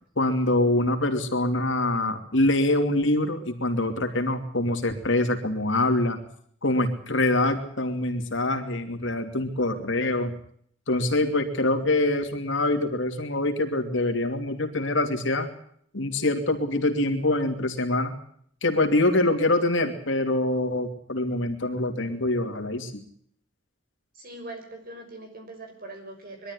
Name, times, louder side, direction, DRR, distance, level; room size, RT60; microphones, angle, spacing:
voice 1, 0.2-6.2 6.6-10.3 10.9-15.5 15.9-18.2 18.6-22.9, left 2 dB, 65° left, 5 dB, 2.8 m, -24 dB
voice 2, 24.1-26.5, right 2 dB, 45° right, 4 dB, 6.1 m, -41 dB
22.5 x 13.0 x 9.8 m, 0.63 s
head